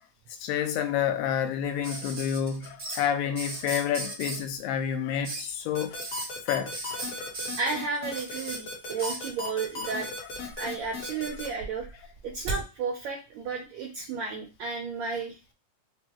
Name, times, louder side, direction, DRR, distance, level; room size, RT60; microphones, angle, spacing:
voice 1, 0.4-6.1 6.5-7.3 9.9-10.0, left 9 dB, 85° left, 2.2 m, -29 dB
sound 1, 1.8-3.0 3.3-4.4 5.2-5.5 5.9-6.3 6.7-8.6 9.0-9.3 10.3-10.9 11.2-12.6 14.0-14.1, right 3 dB, 65° right, 0.7 m, -36 dB
sound 2, 5.7-11.5, left 3 dB, 60° left, 1.8 m, -36 dB
voice 2, 7.6-10.1 10.6-11.9 12.2-15.4, right 4 dB, 80° right, 1.6 m, -33 dB
5.3 x 2.3 x 2.9 m
omnidirectional pair, 3.9 m